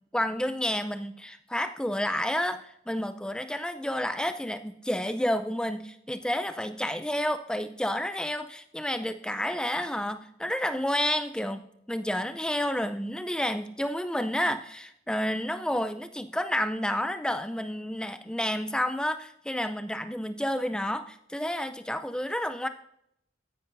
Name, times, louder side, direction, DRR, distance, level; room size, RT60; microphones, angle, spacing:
voice 1, 0.1-11.6 11.9-22.7, left 1 dB, 5° left, 10 dB, 0.5 m, -30 dB
14.0 x 10.0 x 2.7 m, 0.75 s
head